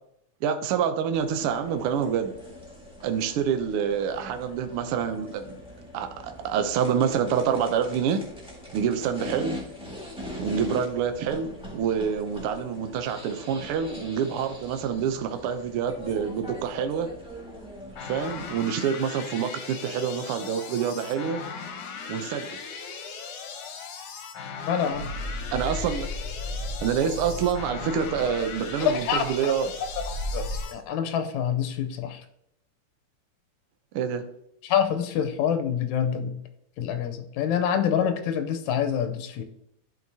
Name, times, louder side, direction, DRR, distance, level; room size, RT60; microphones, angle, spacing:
voice 1, 0.4-2.3 3.0-5.6 5.9-8.2 8.7-9.6 10.4-17.1 18.0-21.4 22.1-22.5 25.5-26.1 26.8-29.7 33.9-34.2, right 7 dB, 85° right, 7 dB, 1.2 m, -27 dB
sound 1, 1.1-18.6, left 1 dB, 5° right, 1.1 m, -42 dB
sound 2, 18.0-30.7, left 6 dB, 65° left, 1.6 m, -39 dB
voice 2, 24.7-25.1 28.8-29.6 30.1-32.2 34.6-36.4 36.8-39.4, left 8 dB, 90° left, 7 dB, 2.0 m, -26 dB
sound 3, 24.9-30.6, left 1 dB, 55° right, 2.4 m, -35 dB
11.5 x 4.5 x 2.7 m, 0.77 s
omnidirectional pair, 3.3 m